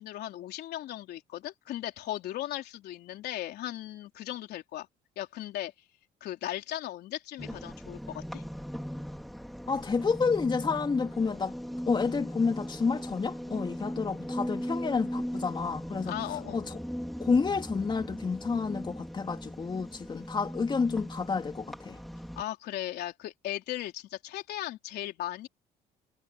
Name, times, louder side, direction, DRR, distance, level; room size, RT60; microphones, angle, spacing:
voice 1, 0.0-4.9 5.2-5.7 6.2-8.4 16.0-16.6 22.4-25.5, left 13 dB, 75° left, 3.8 m, -37 dB
sound 1, 7.4-22.4, equal, ahead, 2.2 m, -39 dB
voice 2, 9.7-11.5 11.9-16.1 16.5-16.8 17.2-22.0, left 5 dB, 25° left, 3.0 m, -29 dB
cardioid pair, 110°, 17 cm